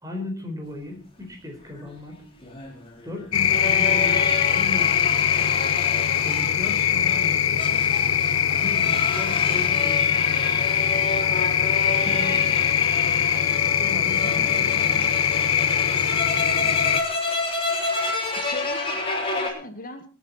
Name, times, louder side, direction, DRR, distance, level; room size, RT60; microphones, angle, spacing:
voice 1, 0.0-2.2 3.0-5.5 6.2-7.9 8.6-10.4 13.8-15.9, left 2 dB, 15° right, 3 dB, 4.3 m, -36 dB
sound 1, 1.7-19.5, left 2 dB, 25° left, 3.7 m, -30 dB
sound 2, 3.3-17.0, left 9 dB, 75° left, 1.0 m, -22 dB
voice 2, 12.1-12.6 14.2-15.2 18.4-20.1, left 1 dB, 45° left, 6 dB, 1.9 m, -38 dB
24.5 x 9.4 x 4.3 m, 0.35 s
head